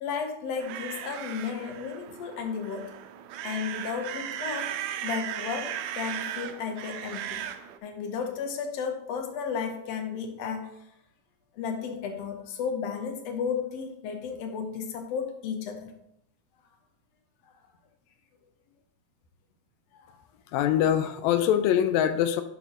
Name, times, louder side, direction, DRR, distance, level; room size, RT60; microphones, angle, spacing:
voice 1, 0.0-2.9 3.4-7.5 7.8-10.7 11.5-15.9 19.9-20.2, left 6 dB, 65° left, 5 dB, 1.8 m, -33 dB
sound 1, 0.6-7.8, right 10 dB, 85° right, 1.6 m, -36 dB
voice 2, 20.5-22.4, left 10 dB, 90° left, 9 dB, 1.5 m, -23 dB
7.0 x 6.1 x 3.8 m, 0.78 s
omnidirectional pair, 3.7 m